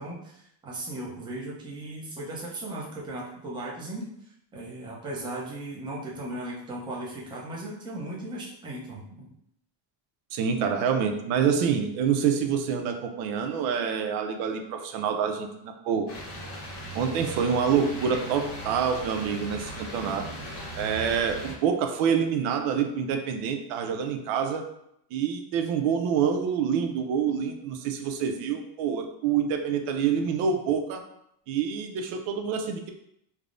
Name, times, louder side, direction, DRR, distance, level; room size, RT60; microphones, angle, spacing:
voice 1, 0.0-4.1 4.5-9.3, right 1 dB, 10° right, -5 dB, 0.5 m, -37 dB
voice 2, 10.3-16.1 16.9-20.2 20.8-24.6 25.1-31.0 31.5-32.9, right 7 dB, 85° right, 5 dB, 0.5 m, -27 dB
sound 1, 16.1-21.5, equal, 30° left, 0.8 m, -38 dB
3.4 x 2.0 x 2.4 m, 0.75 s
cardioid pair, 145°, 46 cm